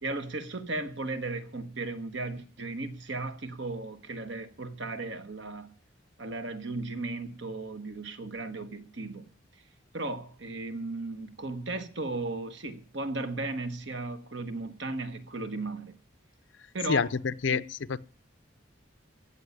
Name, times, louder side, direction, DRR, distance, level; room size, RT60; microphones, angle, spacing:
voice 1, 0.0-5.7 6.2-9.3 9.9-16.0 16.7-17.1 17.5-17.6, right 2 dB, 65° right, 1.3 m, -36 dB
voice 2, 16.9-18.0, left 5 dB, 65° left, 0.5 m, -28 dB
15.5 x 5.5 x 9.7 m
head